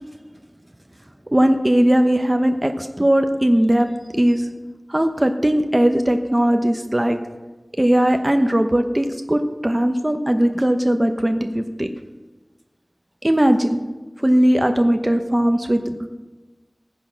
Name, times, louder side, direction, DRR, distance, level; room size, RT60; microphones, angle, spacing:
voice 1, 1.3-3.9 4.1-4.5 4.9-7.2 7.8-11.9 13.2-13.8 14.2-16.1, right 1 dB, 25° right, 6 dB, 1.0 m, -18 dB
14.5 x 9.8 x 6.2 m, 1.2 s
wide cardioid pair, 45°, 0 cm